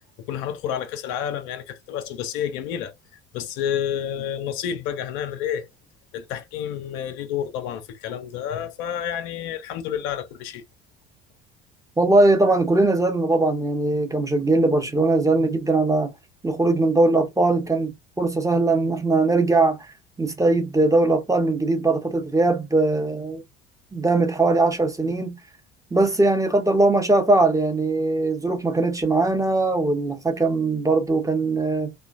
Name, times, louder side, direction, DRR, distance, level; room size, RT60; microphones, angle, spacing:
voice 1, 0.3-2.9 3.3-5.7 6.1-10.6, left 9 dB, 55° left, 0.6 m, -29 dB
voice 2, 12.0-16.1 16.4-19.8 20.2-23.4 23.9-25.4 25.9-31.9, right 2 dB, 10° right, 0.8 m, -20 dB
3.0 x 2.2 x 2.4 m
figure-of-eight pair, 60°, 32 cm